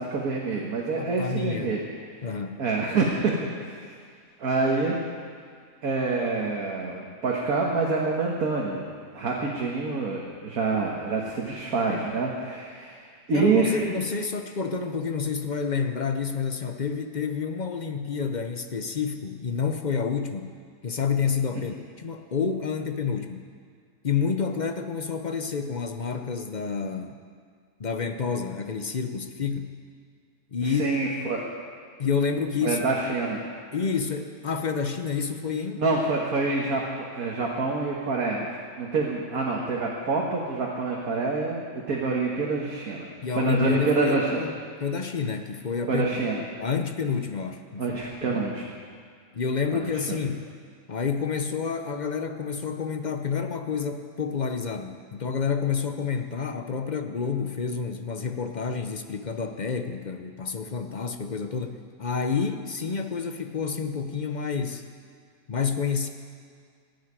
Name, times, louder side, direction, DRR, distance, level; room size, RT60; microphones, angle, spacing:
voice 1, 0.0-1.8 2.6-3.9 4.4-5.0 5.8-8.9 9.1-13.0 13.3-13.8 30.6-31.4 32.6-33.4 35.8-43.1 43.3-44.4 45.9-46.4 47.8-48.6 50.1-50.2, right 3 dB, 75° right, -2 dB, 1.9 m, -26 dB
voice 2, 1.0-1.8 2.2-2.6 13.3-20.5 20.8-23.4 24.0-27.2 27.8-29.7 30.5-30.9 32.0-33.1 33.7-35.8 43.2-46.1 46.6-48.4 49.3-50.5 50.9-64.8 65.5-66.1, left 5 dB, 45° left, 7 dB, 0.6 m, -29 dB
16.5 x 6.6 x 9.6 m, 2.1 s
omnidirectional pair, 1.6 m